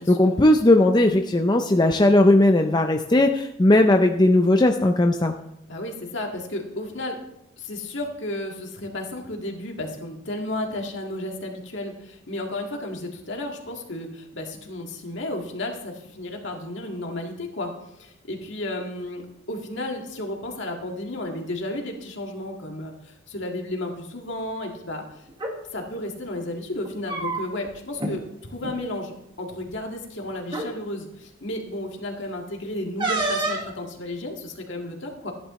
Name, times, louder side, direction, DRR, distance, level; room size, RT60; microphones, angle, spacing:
voice 1, 0.0-5.3, left 1 dB, 20° left, 5 dB, 0.5 m, -18 dB
voice 2, 5.7-7.2 7.6-25.0 25.7-35.3, left 1 dB, 65° left, 1 dB, 2.0 m, -33 dB
sound 1, 25.3-25.6 26.8-27.7 28.0-28.2 28.5-28.8 29.7-29.8 30.5-30.7 33.0-33.7, right 2 dB, 25° right, 1.4 m, -27 dB
14.5 x 11.0 x 3.1 m, 0.80 s
head